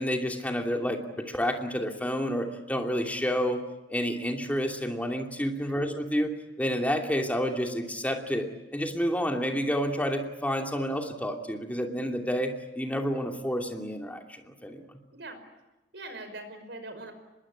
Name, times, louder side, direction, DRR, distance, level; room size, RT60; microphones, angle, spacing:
voice 1, 0.0-3.6 3.9-6.3 6.6-15.0, equal, 10° left, 3 dB, 2.7 m, -29 dB
voice 2, 15.9-17.1, right 2 dB, 75° right, 8 dB, 5.3 m, -42 dB
25.0 x 21.5 x 9.9 m, 1.0 s
head